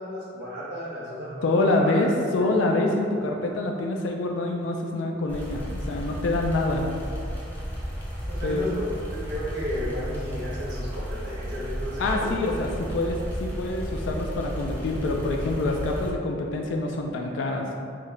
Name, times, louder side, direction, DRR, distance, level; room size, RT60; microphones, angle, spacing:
voice 1, 0.0-2.2 8.3-12.3, equal, 85° right, -7 dB, 0.9 m, -33 dB
voice 2, 1.4-6.8 8.4-8.7 12.0-17.7, left 2 dB, 80° left, 1 dB, 0.3 m, -26 dB
sound 1, 5.3-16.1, equal, 10° left, 0.6 m, -33 dB
3.2 x 2.1 x 3.7 m, 2.5 s
head